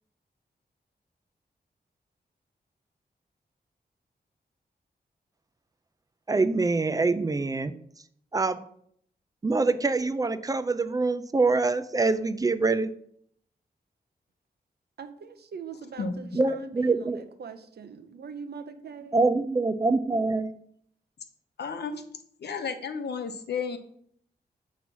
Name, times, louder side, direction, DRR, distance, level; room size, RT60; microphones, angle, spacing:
voice 1, 6.3-7.7 8.3-8.6 9.4-12.9 16.3-17.2 19.1-20.5, right 3 dB, 20° right, 11 dB, 0.3 m, -25 dB
voice 2, 15.0-19.2, right 6 dB, 70° right, 9 dB, 0.7 m, -42 dB
voice 3, 21.6-22.0 22.4-23.8, left 5 dB, 80° left, 7 dB, 0.8 m, -32 dB
7.0 x 3.1 x 5.3 m, 0.66 s
wide cardioid pair, 140°, 17 cm